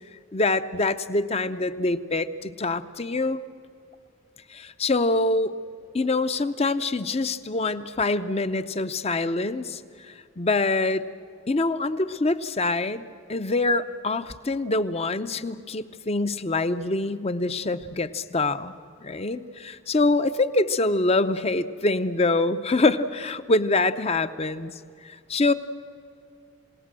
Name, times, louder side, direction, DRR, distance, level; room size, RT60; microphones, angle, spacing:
voice 1, 0.3-3.4 4.5-5.5 5.9-9.8 10.1-11.1 11.5-13.0 13.3-18.7 19.0-24.7 25.0-25.5, left 2 dB, 30° left, 12 dB, 0.7 m, -25 dB
29.0 x 18.0 x 7.6 m, 2.3 s
head